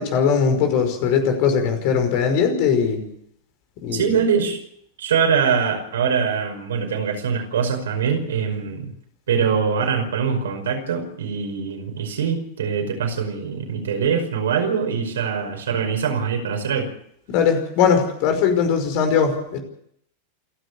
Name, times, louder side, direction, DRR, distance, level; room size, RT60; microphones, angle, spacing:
voice 1, 0.0-3.0 3.8-4.1 17.3-19.6, left 6 dB, 45° left, 6 dB, 5.4 m, -20 dB
voice 2, 3.9-4.6 5.0-8.9 9.3-16.9, right 6 dB, 65° right, 4 dB, 5.4 m, -23 dB
28.5 x 11.5 x 8.5 m, 0.70 s
figure-of-eight pair, 90°, 0 cm